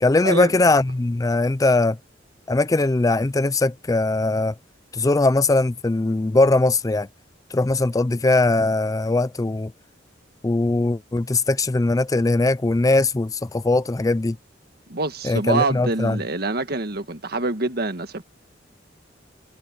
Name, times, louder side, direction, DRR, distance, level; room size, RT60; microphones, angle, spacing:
voice 1, 0.0-2.0 2.5-4.5 4.9-7.1 7.5-9.7 10.4-14.4 15.2-16.2, left 2 dB, 20° left, 0.4 m, -20 dB
voice 2, 14.9-18.2, right 3 dB, 55° right, 1.7 m, -25 dB
head